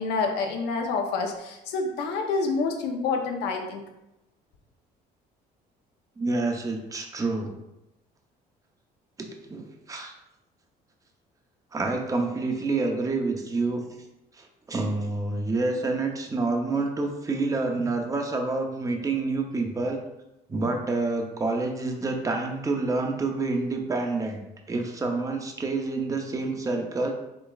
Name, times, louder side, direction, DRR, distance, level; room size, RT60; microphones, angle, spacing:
voice 1, 0.0-3.8, left 4 dB, 85° left, 2 dB, 0.8 m, -28 dB
voice 2, 6.2-7.5 9.2-10.1 11.7-13.8 14.3-20.0 20.5-24.4 24.7-27.1, right 3 dB, 20° right, 3 dB, 0.7 m, -28 dB
5.1 x 3.7 x 2.4 m, 0.90 s
cardioid pair, 110°, 17 cm